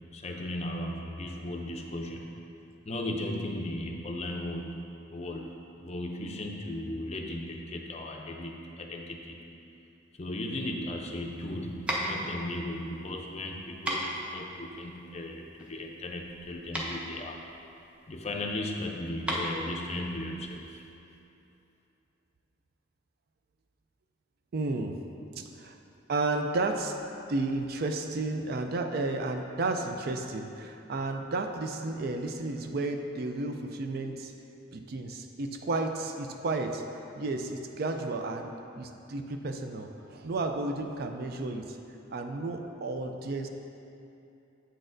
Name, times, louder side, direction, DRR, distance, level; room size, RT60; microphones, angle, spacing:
voice 1, 0.1-2.3 2.9-4.8 5.1-5.5 5.8-9.4 10.2-17.4 18.1-20.8, left 1 dB, 35° left, 1 dB, 0.5 m, -36 dB
sound 1, 10.9-20.8, equal, 5° right, 0.7 m, -37 dB
voice 2, 24.5-25.0 25.4-25.8 26.1-27.0 27.3-34.3 34.7-36.8 37.2-41.8 42.1-43.5, right 2 dB, 50° right, 5 dB, 0.4 m, -32 dB
7.8 x 6.3 x 2.6 m, 2.8 s
head